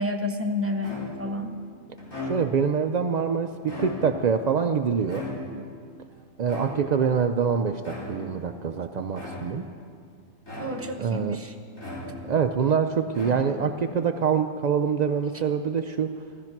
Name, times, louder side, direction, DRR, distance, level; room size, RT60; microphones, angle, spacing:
voice 1, 0.0-1.6 10.6-11.5, left 2 dB, 15° right, 3 dB, 0.7 m, -30 dB
sound 1, 0.8-1.4 2.0-2.7 3.5-4.3 5.1-5.8 6.5-7.1 7.8-8.4 9.1-9.7 10.5-11.1 11.8-12.5 13.1-13.8, left 1 dB, 80° left, 4.8 m, -37 dB
voice 2, 2.2-5.3 6.4-9.7 11.0-11.4 12.2-16.2, right 6 dB, 75° right, 6 dB, 0.4 m, -25 dB
15.0 x 13.5 x 5.9 m, 2.2 s
omnidirectional pair, 1.3 m